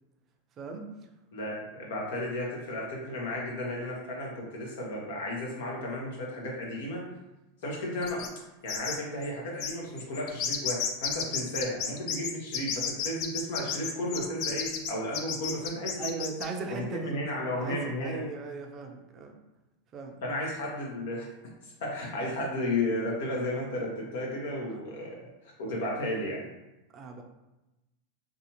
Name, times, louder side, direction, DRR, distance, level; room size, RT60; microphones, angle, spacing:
voice 1, 1.3-7.0 7.6-8.3 8.6-16.1 16.7-18.2 20.2-21.3 21.6-25.2 25.6-26.5, left 1 dB, 70° left, -2 dB, 0.8 m, -33 dB
sound 1, 8.0-8.4 8.7-9.0 9.2-9.3 9.6-16.4, left 7 dB, 55° left, 0.4 m, -32 dB
voice 2, 16.0-17.2 17.6-19.3 19.9-20.2 26.9-27.2, right 4 dB, 35° right, 3 dB, 0.4 m, -38 dB
2.6 x 2.3 x 2.8 m, 0.99 s
hypercardioid pair, 95°, 0 cm